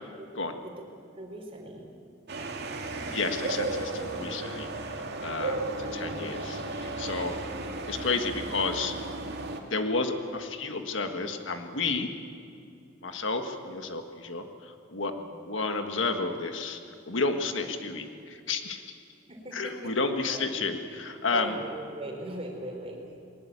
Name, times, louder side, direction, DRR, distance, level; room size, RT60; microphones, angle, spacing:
voice 1, 1.2-1.8 15.2-15.4 19.3-20.0 20.3-20.4 21.3-23.0, right 1 dB, 30° right, 2 dB, 4.1 m, -39 dB
sound 1, 2.3-9.6, right 2 dB, 60° right, 2.3 m, -34 dB
voice 2, 3.1-4.7 5.2-7.4 7.9-8.9 9.7-12.1 13.0-15.1 15.4-16.8 17.0-19.0 19.5-21.6, left 3 dB, 75° left, 6 dB, 1.7 m, -31 dB
21.0 x 19.5 x 8.5 m, 2.5 s
head